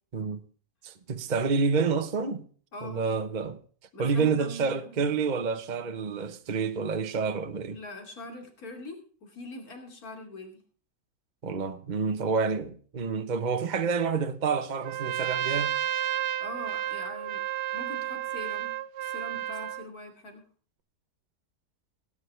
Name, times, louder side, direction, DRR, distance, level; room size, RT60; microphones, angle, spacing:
voice 1, 0.8-2.4 2.8-3.6 4.0-7.8 11.4-15.7, right 5 dB, 35° right, 0.9 m, -28 dB
voice 2, 2.7-3.0 3.9-4.9 7.7-10.6 16.4-17.4 17.7-20.5, left 2 dB, 55° left, 3.2 m, -43 dB
Trumpet, 14.8-19.9, right 12 dB, 80° right, 1.4 m, -31 dB
17.5 x 10.0 x 3.3 m
omnidirectional pair, 1.8 m